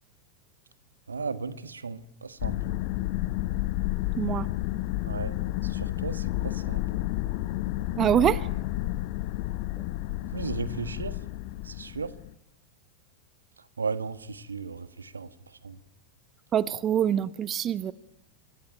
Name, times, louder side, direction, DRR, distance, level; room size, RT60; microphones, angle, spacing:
voice 1, 1.1-2.7 5.1-5.4 5.6-6.8 10.3-11.1 11.6-12.1 13.8-15.3 15.6-15.8, right 4 dB, 75° right, 14 dB, 1.6 m, -35 dB
sound 1, 2.4-12.3, left 16 dB, 45° left, 1.2 m, -31 dB
voice 2, 4.2-4.5 8.0-8.5 9.8-9.9 16.5-17.9, right 10 dB, 25° right, 17 dB, 1.0 m, -25 dB
28.5 x 22.0 x 9.0 m, 0.81 s
figure-of-eight pair, 90°, 0 cm